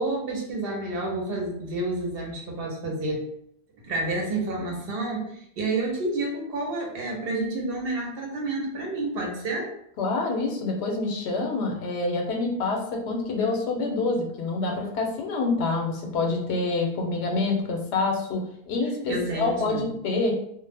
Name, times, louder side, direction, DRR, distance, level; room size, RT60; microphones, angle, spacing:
voice 1, 0.0-3.3 3.8-9.7 19.1-19.9, right 2 dB, 65° right, 0 dB, 0.8 m, -29 dB
voice 2, 10.0-20.3, left 3 dB, 90° left, 1 dB, 0.9 m, -27 dB
2.1 x 2.0 x 3.3 m, 0.70 s
omnidirectional pair, 1.1 m